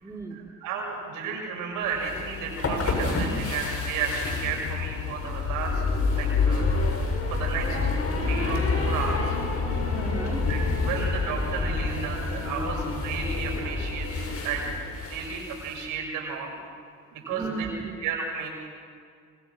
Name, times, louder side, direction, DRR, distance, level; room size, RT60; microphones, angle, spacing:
voice 1, 0.0-0.4 9.5-10.5 17.3-17.9, right 4 dB, 10° right, 1 dB, 3.3 m, -36 dB
voice 2, 0.6-5.8 6.1-6.7 7.3-7.9 8.2-9.4 10.5-14.7 15.0-16.6 17.1-17.7 18.0-18.5, right 5 dB, 85° right, 0 dB, 7.4 m, -33 dB
sound 1, 1.9-15.8, left 3 dB, 50° left, 7.4 m, -28 dB
sound 2, 3.1-11.1, left 14 dB, 70° left, 0.8 m, -37 dB
26.5 x 26.5 x 6.3 m, 2.2 s
supercardioid pair, 85°, 31 cm